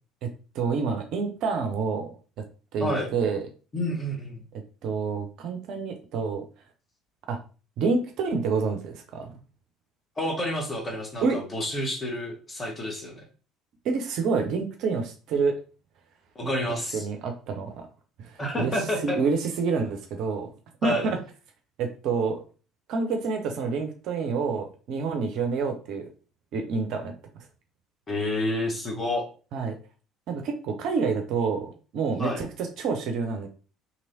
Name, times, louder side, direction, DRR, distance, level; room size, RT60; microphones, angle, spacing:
voice 1, 0.2-2.1 2.7-3.4 4.8-6.4 7.3-7.4 7.8-9.3 11.2-11.4 13.8-15.5 16.4-16.7 16.9-17.9 18.2-18.7 19.0-20.5 20.8-21.2 21.8-22.4 22.9-26.1 26.5-27.1 29.5-29.8 30.3-32.5 32.8-33.5, right 5 dB, 55° right, 5 dB, 0.5 m, -28 dB
voice 2, 3.7-4.4 10.2-13.2 16.3-17.1 18.4-19.2 20.8-21.1 28.1-29.2 32.2-32.4, left 1 dB, 25° left, 0 dB, 1.2 m, -29 dB
3.0 x 2.8 x 2.6 m, 0.36 s
figure-of-eight pair, 55°, 0 cm